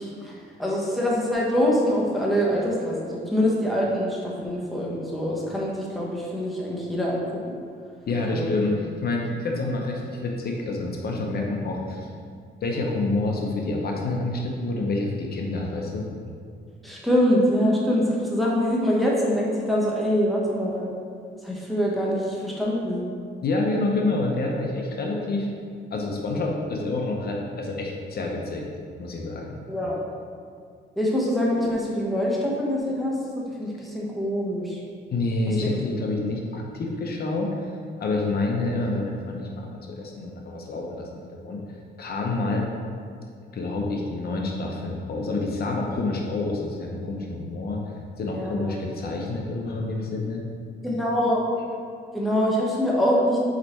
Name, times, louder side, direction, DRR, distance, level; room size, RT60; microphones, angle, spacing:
voice 1, 0.0-7.5 8.3-8.5 16.8-20.9 21.4-23.0 29.7-30.0 31.0-34.8 35.5-35.7 36.0-36.1 48.3-48.7 50.8-51.4 52.1-53.4, equal, ahead, -5 dB, 1.1 m, -24 dB
voice 2, 8.1-12.1 12.6-16.1 23.4-25.5 25.9-28.6 29.0-29.6 35.1-37.7 38.0-41.6 42.0-42.7 43.5-47.8 48.2-50.4, left 2 dB, 55° left, 0 dB, 0.8 m, -28 dB
4.9 x 4.6 x 4.4 m, 2.2 s
cardioid pair, 115°, 19 cm